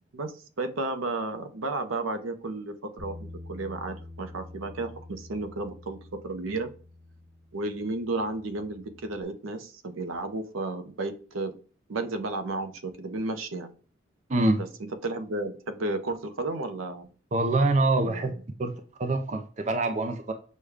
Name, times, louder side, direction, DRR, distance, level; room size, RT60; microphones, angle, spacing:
voice 1, 0.1-6.7 7.5-11.6 11.9-13.7 14.6-14.7 15.0-17.1 18.0-18.4, right 2 dB, 80° right, 8 dB, 0.6 m, -33 dB
Bass guitar, 3.0-9.2, left 2 dB, 5° left, 1.0 m, -47 dB
voice 2, 14.3-14.6 17.3-18.3 18.6-18.7 19.0-20.3, right 2 dB, 35° right, 6 dB, 0.4 m, -25 dB
6.3 x 2.2 x 3.4 m, 0.41 s
head